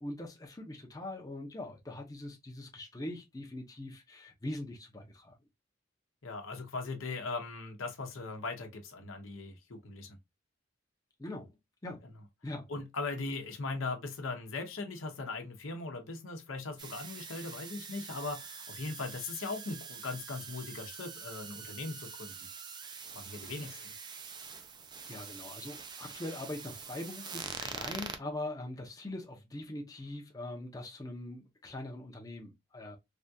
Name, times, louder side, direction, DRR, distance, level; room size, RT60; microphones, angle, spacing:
voice 1, 0.0-5.3 11.2-11.5 11.8-12.0 12.4-12.7 23.4-23.9 25.0-33.0, left 1 dB, 20° left, 0.6 m, -42 dB
voice 2, 6.2-10.2 12.7-22.3 23.1-23.8, left 3 dB, 80° left, 0.8 m, -39 dB
sound 1, 16.8-28.2, right 5 dB, 20° right, 0.4 m, -45 dB
3.4 x 2.3 x 2.6 m
head